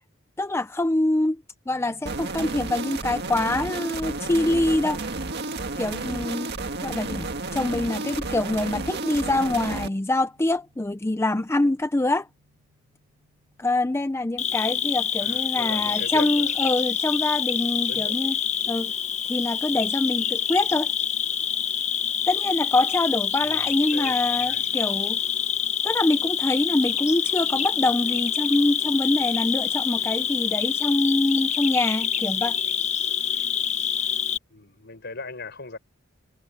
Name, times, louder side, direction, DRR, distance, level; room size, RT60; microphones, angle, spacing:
voice 1, 0.4-5.0 5.8-6.5 6.8-12.3 13.6-18.4 18.7-18.9 19.3-20.9 22.3-25.2 25.8-32.6, left 2 dB, 15° left, 0.5 m, -25 dB
sound 1, 1.7-17.3, left 1 dB, 85° right, 4.6 m, -60 dB
sound 2, 2.0-9.9, right 3 dB, 55° right, 1.8 m, -31 dB
voice 2, 8.0-8.4 15.2-16.5 17.9-18.2 23.4-24.6 34.5-35.8, left 3 dB, 55° left, 5.1 m, -39 dB
Cricket, 14.4-34.4, left 8 dB, 35° left, 1.1 m, -26 dB
head